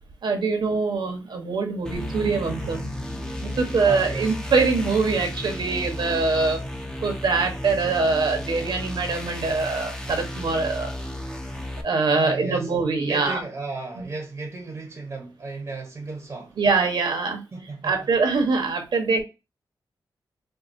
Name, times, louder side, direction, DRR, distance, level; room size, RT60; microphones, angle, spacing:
voice 1, 0.2-2.9 3.4-6.7 7.0-10.9 11.5-13.4 14.0-14.1 16.6-17.4 17.8-19.2, right 4 dB, 70° right, 1.0 m, -23 dB
sound 1, 1.8-11.8, left 1 dB, 10° left, 0.6 m, -34 dB
Bass guitar, 1.9-8.2, equal, 55° left, 2.1 m, -40 dB
voice 2, 3.8-4.3 12.1-12.7 13.0-16.6 17.5-18.0, right 3 dB, 35° right, 0.8 m, -34 dB
4.5 x 2.3 x 2.5 m
wide cardioid pair, 95°, 8 cm